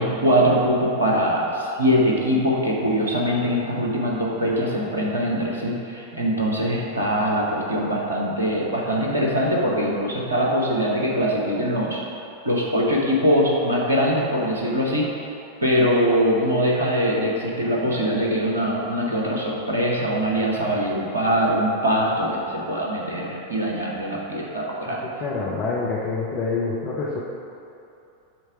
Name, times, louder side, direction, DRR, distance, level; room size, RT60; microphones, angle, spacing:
voice 1, 0.0-12.0 12.4-15.1 15.6-25.0, equal, 80° right, -3 dB, 1.1 m, -22 dB
voice 2, 24.9-27.2, left 4 dB, 35° left, -5 dB, 0.8 m, -27 dB
7.6 x 3.3 x 4.8 m, 2.7 s
figure-of-eight pair, 90°, 0 cm